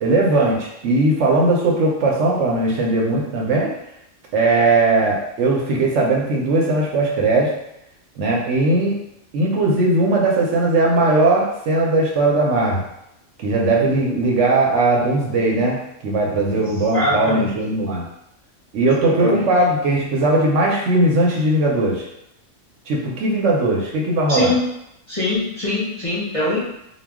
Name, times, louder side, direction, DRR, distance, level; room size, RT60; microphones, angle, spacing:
voice 1, 0.0-3.7 4.3-7.5 8.2-8.9 9.3-12.8 13.4-18.0 18.7-22.0 22.9-24.5, right 2 dB, 70° right, -2 dB, 0.9 m, -18 dB
voice 2, 16.5-17.6 19.0-19.5 24.3-24.7 25.1-26.6, left 2 dB, 35° left, -9 dB, 0.6 m, -23 dB
2.2 x 2.2 x 3.4 m, 0.81 s
omnidirectional pair, 1.3 m